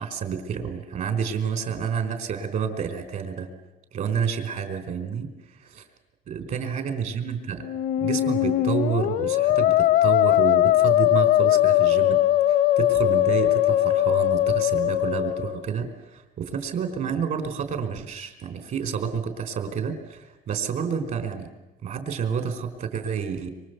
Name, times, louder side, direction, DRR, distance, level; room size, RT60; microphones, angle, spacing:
voice 1, 0.0-3.5 3.9-5.8 6.3-7.6 8.0-12.2 12.5-21.5 21.8-23.5, right 6 dB, 60° right, 8 dB, 4.4 m, -29 dB
Musical instrument, 7.6-15.6, left 13 dB, 90° left, 1.1 m, -20 dB
26.0 x 25.5 x 8.1 m, 1.0 s
cardioid pair, 135°, 15 cm